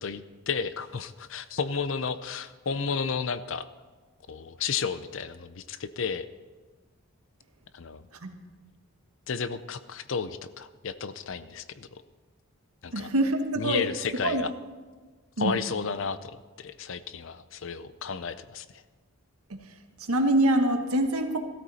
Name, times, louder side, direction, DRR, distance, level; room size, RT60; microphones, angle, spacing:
voice 1, 0.0-3.7 4.3-6.3 7.7-8.0 9.3-12.0 12.8-13.1 13.6-14.5 15.4-18.7, left 5 dB, 60° left, 13 dB, 0.6 m, -32 dB
voice 2, 12.9-13.9 14.2-14.4 15.4-15.6 19.5-19.6 20.0-21.4, right 1 dB, 90° right, 5 dB, 1.5 m, -25 dB
16.0 x 13.5 x 4.2 m, 1.3 s
head